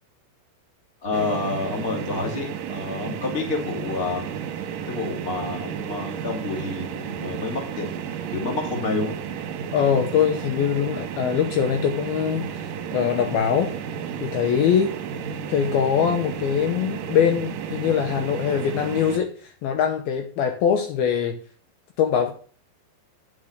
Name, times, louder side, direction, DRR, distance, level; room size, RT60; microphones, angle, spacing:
voice 1, 1.0-4.3 4.9-7.9 8.3-9.1, left 3 dB, 20° left, 0 dB, 1.8 m, -29 dB
sound 1, 1.1-19.2, right 8 dB, 70° right, 2.2 m, -32 dB
voice 2, 9.7-13.7 14.2-14.9 15.5-21.4 22.0-22.3, left 8 dB, 75° left, 4 dB, 2.5 m, -22 dB
10.0 x 5.7 x 6.5 m, 0.43 s
omnidirectional pair, 5.0 m